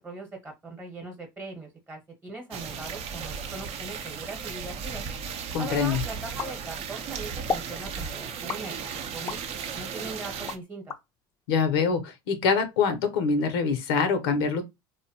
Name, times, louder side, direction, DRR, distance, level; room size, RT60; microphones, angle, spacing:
voice 1, 0.0-5.0 5.6-10.9, right 3 dB, 20° right, 1.0 m, -40 dB
sound 1, 2.5-10.6, right 6 dB, 55° right, 0.6 m, -35 dB
voice 2, 5.5-6.0 11.5-14.6, left 5 dB, 80° left, 0.6 m, -25 dB
sound 2, 6.4-7.1 7.5-7.8 8.5-9.5 10.0-11.0, left 5 dB, 30° left, 0.4 m, -34 dB
2.7 x 2.1 x 2.7 m
supercardioid pair, 90°, 12 cm